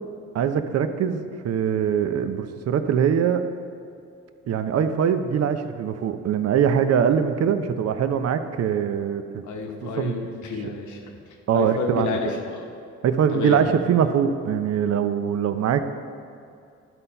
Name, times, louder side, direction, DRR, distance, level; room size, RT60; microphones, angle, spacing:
voice 1, 0.3-3.4 4.5-9.4 9.8-10.2 11.5-12.2 13.0-15.8, right 8 dB, 55° right, 9 dB, 0.6 m, -22 dB
voice 2, 9.5-11.1 11.5-12.7 13.3-13.6, left 4 dB, 75° left, 2 dB, 1.2 m, -30 dB
11.0 x 4.2 x 5.5 m, 2.4 s
cardioid pair, 90°, 30 cm